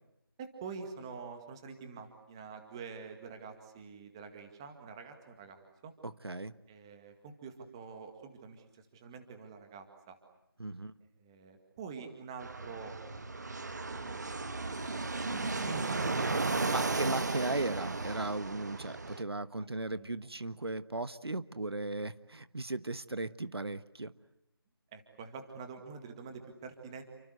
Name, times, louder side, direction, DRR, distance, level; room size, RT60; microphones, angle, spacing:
voice 1, 0.4-5.9 6.7-10.2 11.2-13.0 13.6-14.2 14.9-17.0 17.8-18.0 19.9-20.1 24.9-27.0, right 5 dB, 10° right, 6 dB, 2.0 m, -47 dB
voice 2, 6.0-6.5 10.6-10.9 16.7-24.1, right 2 dB, 85° right, 13 dB, 1.4 m, -37 dB
Fixed-wing aircraft airplane, 12.4-19.2, right 3 dB, 45° right, 1.6 m, -35 dB
29.5 x 25.0 x 8.1 m, 0.82 s
figure-of-eight pair, 170°, 13 cm